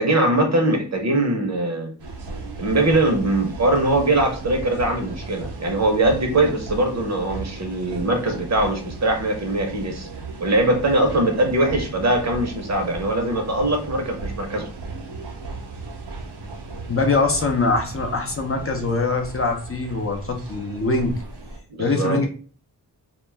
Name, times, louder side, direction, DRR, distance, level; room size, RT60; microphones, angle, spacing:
voice 1, 0.0-1.9 2.6-10.1 10.4-14.7 21.8-22.2, right 2 dB, 40° right, 3 dB, 0.7 m, -21 dB
sound 1, 2.0-21.6, right 3 dB, 85° right, 0.7 m, -36 dB
voice 2, 16.9-21.2 21.8-22.3, left 3 dB, 35° left, 3 dB, 0.5 m, -23 dB
2.2 x 2.0 x 3.2 m, 0.40 s
cardioid pair, 60°, 40 cm